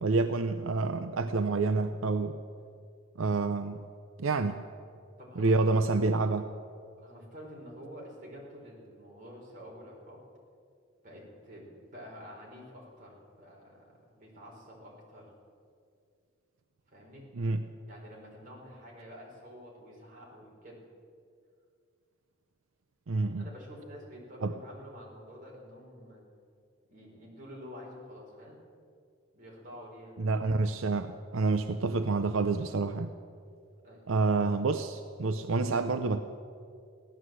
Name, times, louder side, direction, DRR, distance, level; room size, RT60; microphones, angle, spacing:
voice 1, 0.0-2.4 3.2-3.8 4.2-4.6 5.4-6.5 17.3-17.6 23.1-23.5 24.4-24.5 30.2-33.1 34.1-36.2, right 3 dB, 80° right, 8 dB, 0.6 m, -28 dB
voice 2, 5.2-5.5 5.8-6.1 7.0-10.2 11.0-15.3 16.9-17.2 17.9-20.8 23.4-26.2 26.9-28.6 29.3-30.1 33.8-34.0, equal, 40° right, -3 dB, 4.1 m, -48 dB
16.0 x 11.0 x 7.7 m, 2.3 s
head